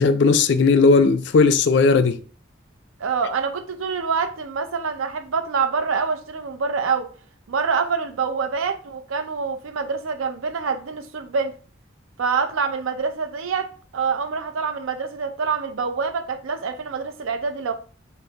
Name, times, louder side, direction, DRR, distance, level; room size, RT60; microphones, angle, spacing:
voice 1, 0.0-2.2, left 4 dB, 60° left, 0.3 m, -16 dB
voice 2, 3.0-7.1 7.5-11.5 12.2-17.7, right 5 dB, 90° right, 0.5 m, -26 dB
5.2 x 2.0 x 2.8 m
head